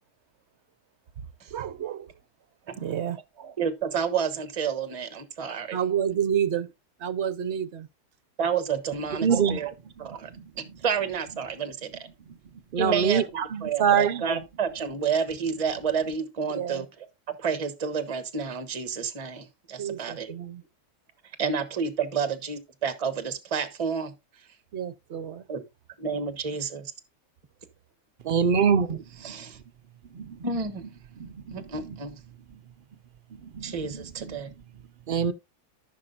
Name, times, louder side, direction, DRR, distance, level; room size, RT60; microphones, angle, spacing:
voice 1, 1.5-2.1 2.8-3.5 5.7-6.7 7.0-7.9 16.5-16.8 19.8-20.6 24.7-25.4, right 9 dB, 55° right, 0.9 m, -30 dB
voice 2, 3.6-5.8 8.4-9.7 10.0-10.3 10.6-12.0 12.8-20.3 21.4-24.1 25.5-25.6 26.0-26.9 29.2-29.6 30.4-30.8 31.5-32.2 33.6-34.5, right 6 dB, 25° right, 0.9 m, -30 dB
voice 3, 9.2-9.6 12.7-13.2 13.8-14.2 28.3-29.0 30.2-30.3 31.2-31.3 33.6-33.7 35.1-35.3, right 7 dB, 75° right, 0.4 m, -22 dB
14.0 x 5.8 x 2.5 m
omnidirectional pair, 1.6 m